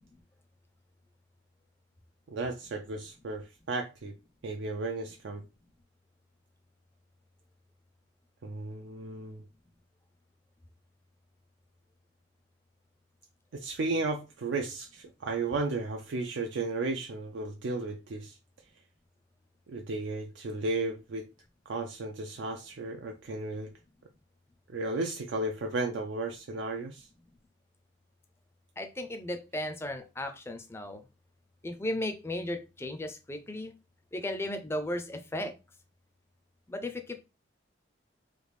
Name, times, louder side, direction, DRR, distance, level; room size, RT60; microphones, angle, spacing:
voice 1, 2.3-4.1 4.4-5.4 8.4-9.4 13.5-18.4 19.7-21.3 21.7-23.7 24.7-27.1, right 3 dB, 70° right, 0.4 m, -34 dB
voice 2, 28.8-31.0 31.6-33.7 34.1-35.5 36.7-37.2, left 1 dB, 15° left, 0.4 m, -35 dB
3.2 x 2.3 x 3.2 m
head